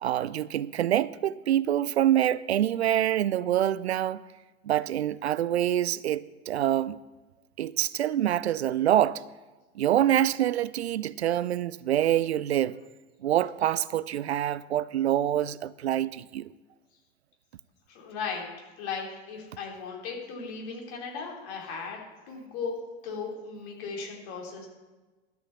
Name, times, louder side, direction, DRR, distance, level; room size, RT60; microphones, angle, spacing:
voice 1, 0.0-4.2 4.6-7.0 7.6-9.2 9.8-12.7 13.2-16.5, right 11 dB, 75° right, 0.5 m, -26 dB
voice 2, 17.9-18.5 18.8-22.0 22.3-22.8 23.0-24.7, left 5 dB, 55° left, 3.6 m, -36 dB
12.5 x 6.2 x 7.0 m
figure-of-eight pair, 85°, 33 cm